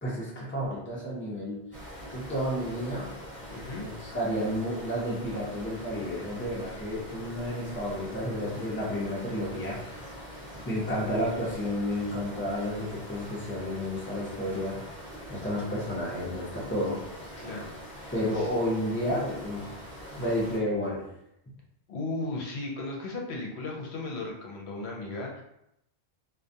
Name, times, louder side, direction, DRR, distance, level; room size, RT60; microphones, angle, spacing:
voice 1, 0.0-1.6 2.1-3.1 3.8-10.0 10.6-15.0 15.3-17.0 17.3-17.5 18.1-19.8 20.1-21.0, equal, 15° left, -6 dB, 0.6 m, -31 dB
sound 1, 1.7-20.6, equal, 5° right, 1.1 m, -44 dB
voice 2, 3.5-3.8 17.4-18.5 21.9-25.4, left 2 dB, 80° left, -1 dB, 0.9 m, -36 dB
2.3 x 2.1 x 2.6 m, 0.79 s
omnidirectional pair, 1.1 m